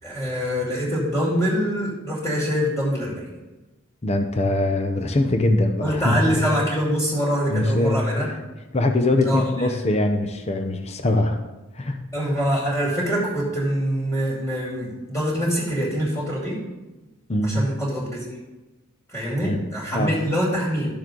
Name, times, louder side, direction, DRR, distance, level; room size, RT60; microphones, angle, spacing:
voice 1, 0.0-3.3 5.8-8.3 9.2-9.7 12.1-16.6 17.4-18.2 19.1-20.9, equal, 15° left, -5 dB, 2.5 m, -24 dB
voice 2, 4.0-6.4 7.5-8.2 8.7-11.4 11.8-12.0 17.3-17.6 19.4-19.6 19.9-20.2, left 2 dB, 30° left, 6 dB, 0.7 m, -22 dB
12.0 x 7.1 x 3.8 m, 1.1 s
head